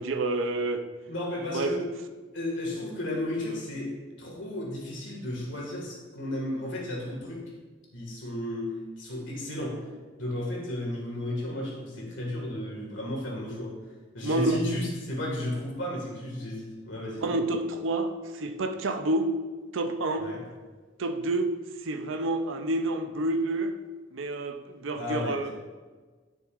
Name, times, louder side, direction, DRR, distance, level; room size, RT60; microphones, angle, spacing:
voice 1, 0.0-0.9 1.5-1.7 14.2-14.7 17.2-19.3 19.7-20.3 21.0-21.5 21.8-23.7 24.1-25.5, right 2 dB, 80° right, 6 dB, 0.6 m, -28 dB
voice 2, 1.1-1.9 2.3-7.4 7.9-9.8 10.2-13.8 14.1-17.4 20.2-20.4 24.9-25.5, left 1 dB, 70° left, -2 dB, 2.0 m, -33 dB
10.5 x 6.3 x 2.5 m, 1.4 s
head